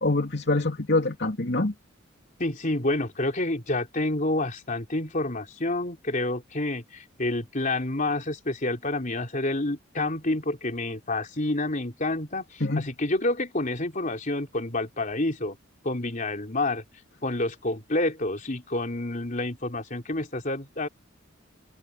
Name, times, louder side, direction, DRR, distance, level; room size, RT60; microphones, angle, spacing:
voice 1, 0.0-1.7 12.6-12.9, left 2 dB, 55° left, 3.0 m, -25 dB
voice 2, 2.4-15.6 15.8-16.8 17.2-20.9, left 2 dB, 40° left, 3.9 m, -28 dB
head